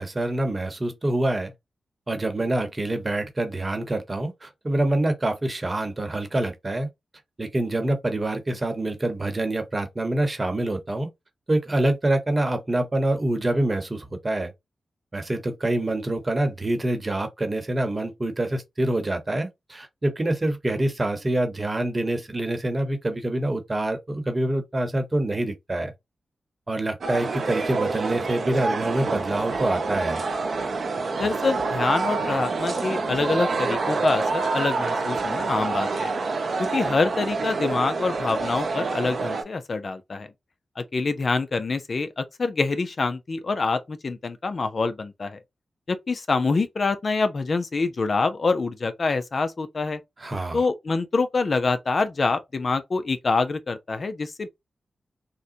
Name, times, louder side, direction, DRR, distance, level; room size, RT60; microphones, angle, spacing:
voice 1, 0.0-1.5 2.1-6.9 7.4-11.1 11.5-14.5 15.1-25.9 26.7-30.2 50.2-50.6, right 1 dB, 30° right, 1.0 m, -26 dB
sound 1, 27.0-39.4, right 3 dB, 70° right, 0.6 m, -27 dB
voice 2, 31.2-36.1 36.6-40.3 40.8-45.4 45.9-50.0 50.5-54.5, left 3 dB, 50° left, 0.5 m, -26 dB
3.8 x 2.2 x 2.6 m
cardioid pair, 70°, 0 cm